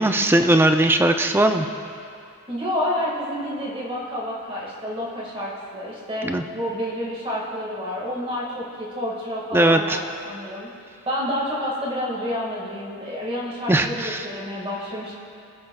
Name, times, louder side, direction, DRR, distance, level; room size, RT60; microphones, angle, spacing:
voice 1, 0.0-1.7 6.2-6.4 9.5-10.0 13.7-14.3, right 1 dB, 10° right, 6 dB, 0.4 m, -19 dB
voice 2, 2.5-10.7 11.1-15.2, left 1 dB, 25° right, -4 dB, 1.8 m, -29 dB
24.0 x 8.5 x 2.3 m, 2.6 s
head